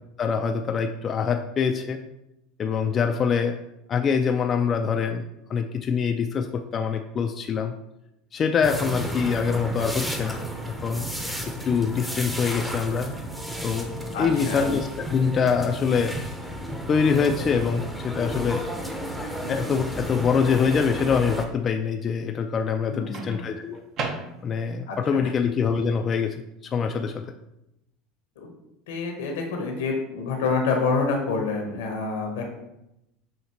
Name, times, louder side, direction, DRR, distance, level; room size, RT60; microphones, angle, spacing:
voice 1, 0.2-2.0 2.6-3.6 3.9-7.7 8.3-11.1 11.5-13.1 13.6-13.9 14.2-16.2 16.9-18.7 19.5-23.8 24.4-27.3, left 6 dB, 35° left, 4 dB, 0.3 m, -24 dB
sound 1, 8.6-21.5, equal, 5° right, 0.7 m, -32 dB
voice 2, 14.1-14.7 22.9-23.5 24.9-25.0 25.2-25.3 28.4-28.5 28.9-32.5, left 4 dB, 80° left, 2 dB, 1.0 m, -27 dB
Microwave oven, 14.4-15.1 17.1-17.3 23.1-24.8, right 4 dB, 50° right, 0.7 m, -36 dB
5.8 x 2.8 x 2.8 m, 0.86 s
hypercardioid pair, 90°, 0 cm